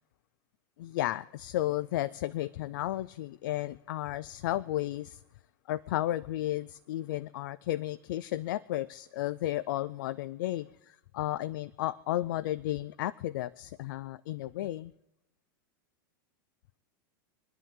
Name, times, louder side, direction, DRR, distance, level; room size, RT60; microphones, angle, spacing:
voice 1, 0.8-5.2 5.7-14.9, left 14 dB, 65° left, 0.4 m, -33 dB
27.5 x 10.0 x 3.7 m
supercardioid pair, 140°, 11 cm